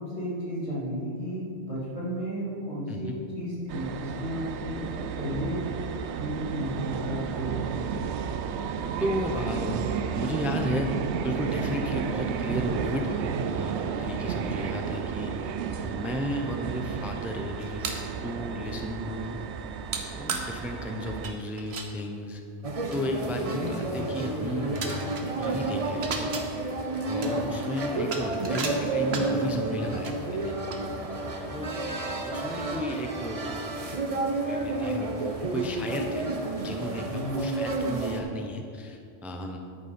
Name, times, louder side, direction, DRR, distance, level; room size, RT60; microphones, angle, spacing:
voice 1, 0.0-8.0 27.2-27.4 37.0-37.7, equal, 80° left, -7 dB, 3.2 m, -33 dB
sound 1, 3.7-21.3, right 7 dB, 90° right, 0.9 m, -32 dB
voice 2, 9.0-15.5 15.8-19.4 20.1-22.4 22.9-26.3 27.0-30.6 31.5-33.5 34.5-36.3 36.6-39.6, left 1 dB, ahead, 3 dB, 0.6 m, -34 dB
sound 2, 17.6-18.1 19.9-20.0 20.3-20.5 21.1-21.9 22.6-22.7 22.9-23.0 23.4-23.7 24.3-24.4 24.7-25.5 25.8-26.5 26.9-29.5 30.0-30.2 30.7-31.4 31.8-31.9 32.5-32.6 32.9-33.3, right 4 dB, 70° right, 1.2 m, -35 dB
sound 3, 22.6-38.2, right 2 dB, 35° right, 0.9 m, -31 dB
10.0 x 8.8 x 4.3 m, 2.5 s
omnidirectional pair, 1.1 m